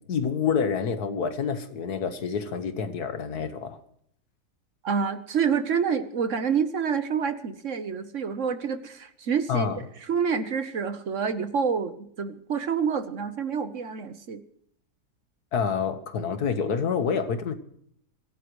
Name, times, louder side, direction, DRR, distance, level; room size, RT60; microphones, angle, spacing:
voice 1, 0.1-3.8 9.5-9.8 15.5-17.5, left 6 dB, 75° left, 9 dB, 1.8 m, -27 dB
voice 2, 4.8-9.7 10.1-14.4, right 6 dB, 55° right, 11 dB, 1.2 m, -27 dB
24.5 x 16.5 x 3.2 m, 0.68 s
omnidirectional pair, 1.7 m